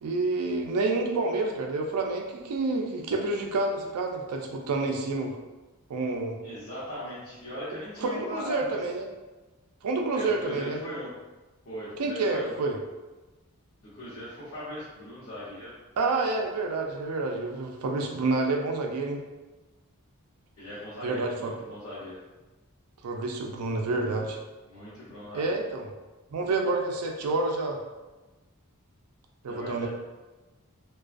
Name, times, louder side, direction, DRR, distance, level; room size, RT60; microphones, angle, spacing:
voice 1, 0.0-5.4 5.9-6.4 8.0-9.1 9.8-10.8 12.0-12.8 16.0-19.2 21.0-21.5 23.0-24.4 25.3-25.9 26.3-27.8 29.4-29.9, right 3 dB, 85° right, 2 dB, 0.4 m, -28 dB
voice 2, 6.4-8.8 10.1-11.1 11.6-12.5 13.8-15.7 20.6-22.2 24.6-25.6 29.5-29.9, left 1 dB, 70° left, -11 dB, 0.8 m, -39 dB
2.4 x 2.2 x 2.3 m, 1.2 s
head